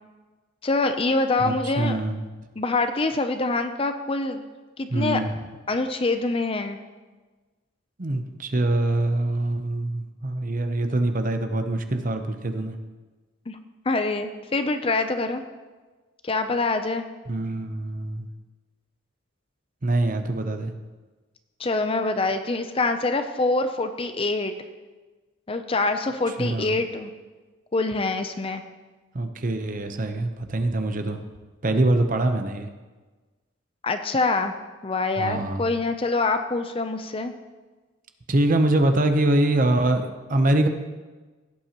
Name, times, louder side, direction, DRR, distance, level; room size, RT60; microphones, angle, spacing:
voice 1, 0.6-2.0 2.6-4.4 4.8-5.2 5.7-6.8 13.5-13.6 13.9-15.4 16.2-17.0 21.6-24.5 25.5-27.1 27.7-28.6 33.8-34.5 34.8-37.3, left 3 dB, 25° left, 8 dB, 0.5 m, -25 dB
voice 2, 1.4-2.3 4.9-5.3 8.0-12.8 17.3-18.3 19.8-20.7 26.4-26.8 29.1-31.2 31.6-32.7 35.2-35.6 38.3-40.7, right 2 dB, 40° right, 7 dB, 0.8 m, -24 dB
16.5 x 8.4 x 3.0 m, 1.3 s
head